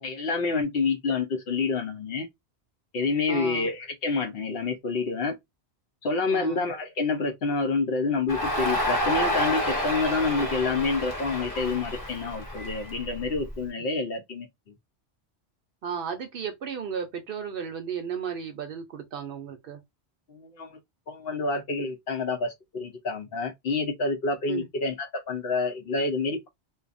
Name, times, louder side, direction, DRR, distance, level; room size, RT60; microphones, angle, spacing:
voice 1, 0.0-2.3 2.9-5.4 6.0-14.5 20.3-20.7 21.1-26.5, left 4 dB, 65° left, 0.9 m, -28 dB
voice 2, 3.3-3.7 6.3-6.7 15.8-19.8 24.5-24.7, right 7 dB, 60° right, 0.7 m, -34 dB
Crowd, 8.3-13.5, equal, 20° left, 1.0 m, -29 dB
2.6 x 2.3 x 2.5 m
omnidirectional pair, 1.2 m